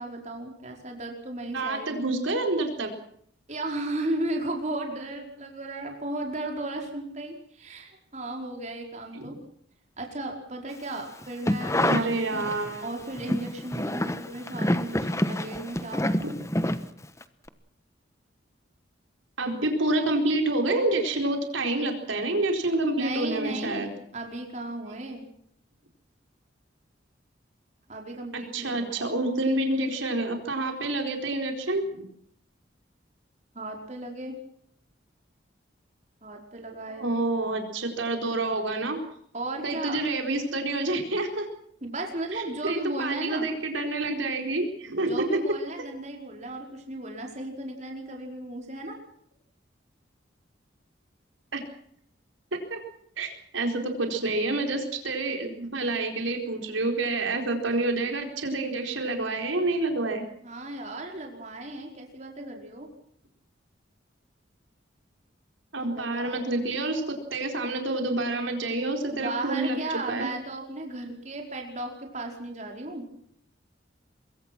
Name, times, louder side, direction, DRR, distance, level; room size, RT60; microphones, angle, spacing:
voice 1, 0.0-2.0 3.5-9.3 10.0-12.5 12.8-16.4 23.0-23.9 24.1-25.2 27.9-29.1 33.5-34.4 36.2-37.1 39.3-40.0 41.8-43.5 45.0-49.0 60.4-62.9 65.9-66.7 69.1-73.1, right 2 dB, 35° right, 2 dB, 4.8 m, -35 dB
voice 2, 1.5-2.9 9.1-9.3 11.8-12.9 16.2-16.4 19.4-23.9 28.5-31.9 36.9-39.0 39.6-41.5 42.3-45.2 51.5-51.6 52.7-52.8 53.2-60.2 65.7-69.8 70.1-70.3, right 2 dB, 85° right, 4 dB, 4.5 m, -28 dB
sound 1, 11.2-12.8 13.1-17.2 17.5-17.6, left 1 dB, 15° left, 1.2 m, -27 dB
24.5 x 23.0 x 6.1 m, 0.66 s
head